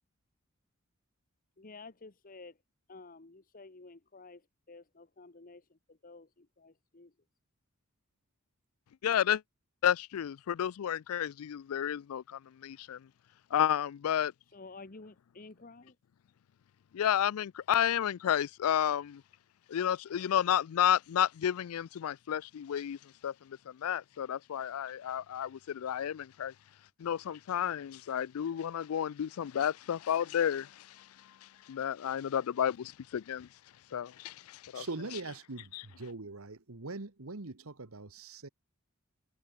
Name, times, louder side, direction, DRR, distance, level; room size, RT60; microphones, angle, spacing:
voice 1, 1.6-2.6 2.9-7.1 14.5-16.0, left 3 dB, 40° left, 1.2 m, -52 dB
voice 2, 9.0-9.4 9.8-13.1 13.5-14.3 16.9-19.2 19.7-26.5 27.0-33.5 33.9-34.9 35.7-35.8, left 9 dB, 85° left, 0.4 m, -31 dB
voice 3, 34.7-38.5, right 3 dB, 80° right, 1.5 m, -42 dB
head